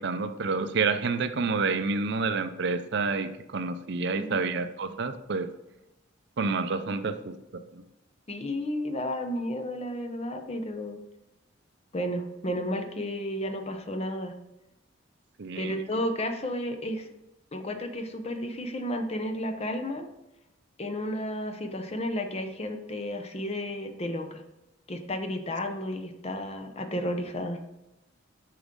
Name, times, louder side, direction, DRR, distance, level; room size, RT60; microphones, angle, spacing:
voice 1, 0.0-5.5 6.4-7.3 7.7-7.8 15.4-15.8, right 4 dB, 60° right, 10 dB, 0.5 m, -29 dB
voice 2, 4.0-4.4 8.3-11.0 11.9-14.4 15.6-17.1 17.5-20.1 20.8-24.4 24.9-27.6, left 1 dB, 30° left, 6 dB, 0.7 m, -32 dB
7.4 x 6.0 x 3.7 m, 0.90 s
head